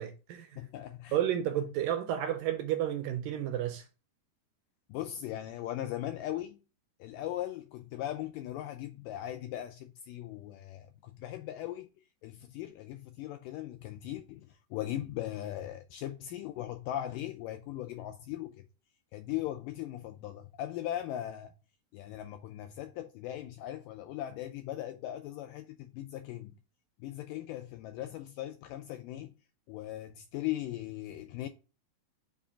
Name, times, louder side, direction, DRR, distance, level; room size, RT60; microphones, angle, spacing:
voice 1, 0.0-0.5 1.1-3.8, right 11 dB, 80° right, 2.0 m, -31 dB
voice 2, 0.6-1.2 4.9-6.6 7.0-11.9 12.2-18.6 19.1-21.5 21.9-26.5 27.0-29.3 29.7-31.5, left 13 dB, 85° left, 1.9 m, -39 dB
7.1 x 2.5 x 5.5 m
omnidirectional pair, 4.3 m